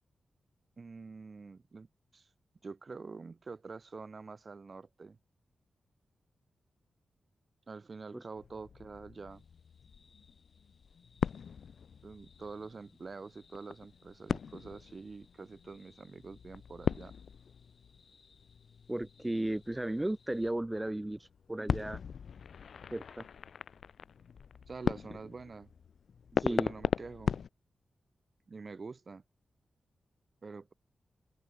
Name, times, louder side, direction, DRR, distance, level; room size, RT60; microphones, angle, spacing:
voice 1, 0.8-1.9 2.1-2.3 2.6-5.2 7.7-9.4 12.0-17.1 24.7-25.7 26.5-27.4 28.5-29.2 30.4-30.7, right 4 dB, 45° right, 0.6 m, -46 dB
sound 1, 8.4-27.5, left 7 dB, 75° left, 0.4 m, -39 dB
sound 2, 9.3-20.5, left 4 dB, 50° left, 2.3 m, -67 dB
voice 2, 18.9-22.0 22.9-23.2 26.3-26.7, right 1 dB, 15° right, 0.3 m, -35 dB
open air
cardioid pair, 70°, 0 cm